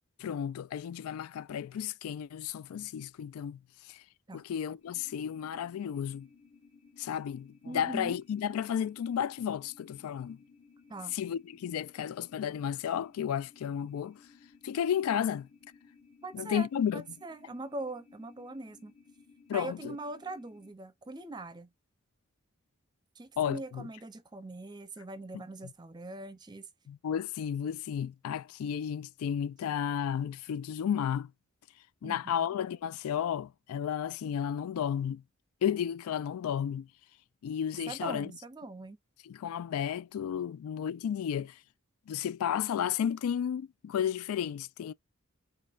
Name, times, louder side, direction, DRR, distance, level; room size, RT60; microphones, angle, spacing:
voice 1, 0.2-3.6 3.9-4.0 4.3-6.3 7.0-10.4 11.1-14.2 14.6-15.5 16.3-17.0 19.5-20.0 23.4-23.9 25.3-25.4 26.9-31.3 32.0-35.2 35.6-36.9 37.4-38.3 39.3-41.6 42.1-44.9, left 8 dB, 85° left, 0.3 m, -33 dB
sound 1, 4.8-20.7, left 5 dB, 60° left, 1.1 m, -60 dB
voice 2, 7.7-8.2 10.9-11.2 16.2-16.7 16.9-18.9 19.5-21.7 23.2-26.7 32.0-32.5 37.9-39.0, right 2 dB, 20° right, 0.5 m, -42 dB
4.1 x 4.1 x 2.4 m
head